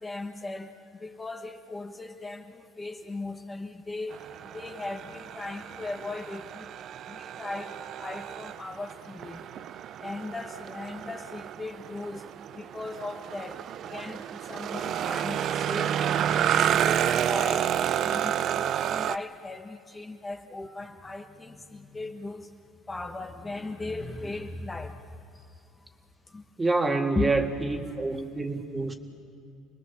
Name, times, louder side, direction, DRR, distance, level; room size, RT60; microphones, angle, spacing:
voice 1, 0.0-4.2 4.5-6.7 7.1-9.4 10.0-13.6 13.9-17.7 18.0-22.5 22.9-25.0 26.3-26.4 27.1-27.3 28.1-28.2, left 3 dB, 15° left, 4 dB, 1.2 m, -38 dB
sound 1, 4.1-19.2, right 10 dB, 55° right, 0.5 m, -30 dB
voice 2, 26.6-28.9, right 3 dB, 20° right, 5 dB, 1.8 m, -27 dB
27.0 x 20.5 x 7.1 m, 2.6 s
cardioid pair, 110°, 0 cm